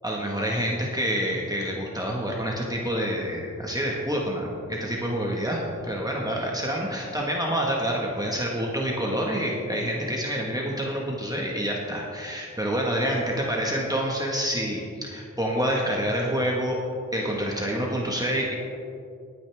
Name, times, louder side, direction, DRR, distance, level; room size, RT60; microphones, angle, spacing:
voice 1, 0.0-16.8 17.1-18.5, equal, 10° right, -3 dB, 1.6 m, -27 dB
19.5 x 9.5 x 3.6 m, 2.5 s
wide cardioid pair, 85°, 31 cm